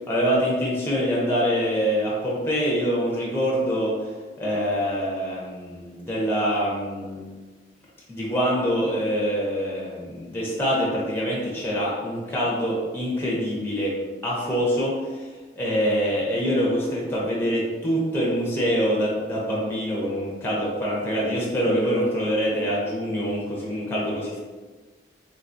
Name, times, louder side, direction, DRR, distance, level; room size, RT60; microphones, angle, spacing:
voice 1, 0.1-4.1 4.4-7.3 8.1-14.0 14.2-15.3 15.6-24.4, equal, 10° left, -5 dB, 0.6 m, -25 dB
3.7 x 2.3 x 2.5 m, 1.3 s
head